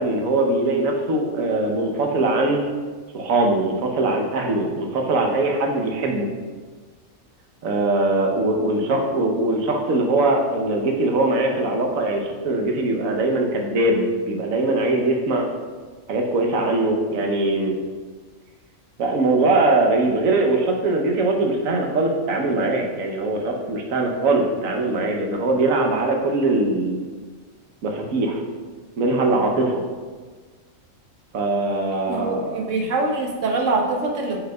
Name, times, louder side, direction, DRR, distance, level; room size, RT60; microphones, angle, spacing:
voice 1, 0.0-2.6 3.1-6.3 7.6-15.5 16.1-17.8 19.0-27.0 27.8-28.4 29.0-29.8 31.3-32.6, right 2 dB, 90° right, 2 dB, 1.3 m, -21 dB
voice 2, 32.1-34.4, right 3 dB, 70° right, 2 dB, 1.2 m, -24 dB
8.6 x 5.6 x 2.3 m, 1.5 s
omnidirectional pair, 1.4 m